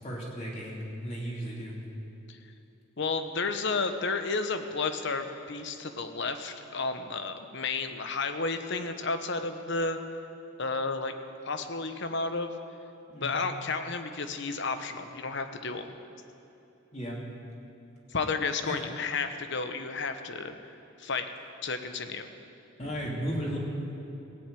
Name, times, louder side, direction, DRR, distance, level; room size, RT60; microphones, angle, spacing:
voice 1, 0.0-1.8 13.1-13.4 16.9-17.2 18.6-18.7 22.8-23.6, equal, 35° left, -4 dB, 2.8 m, -35 dB
voice 2, 3.0-10.0 10.6-11.1 11.5-12.5 13.2-16.0 18.1-20.6 21.0-21.3 21.6-22.3, left 4 dB, 60° left, 8 dB, 0.9 m, -32 dB
16.5 x 7.6 x 8.9 m, 2.9 s
head